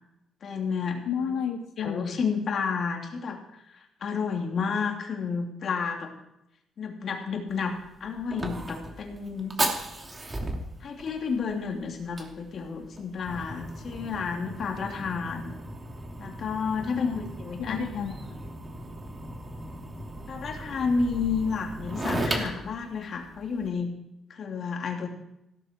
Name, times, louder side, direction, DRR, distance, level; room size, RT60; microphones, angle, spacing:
voice 1, 0.4-1.0 1.8-6.1 6.8-9.6 10.8-15.5 16.2-17.8 20.3-23.9 24.3-25.1, left 5 dB, 55° left, 2 dB, 3.1 m, -31 dB
voice 2, 1.0-2.1 16.9-17.2 17.6-18.4, left 7 dB, 85° left, 3 dB, 1.3 m, -31 dB
Fire, 7.5-23.7, right 1 dB, 25° right, 2.9 m, -36 dB
16.5 x 13.0 x 4.7 m, 0.85 s
cardioid pair, 90°, 0 cm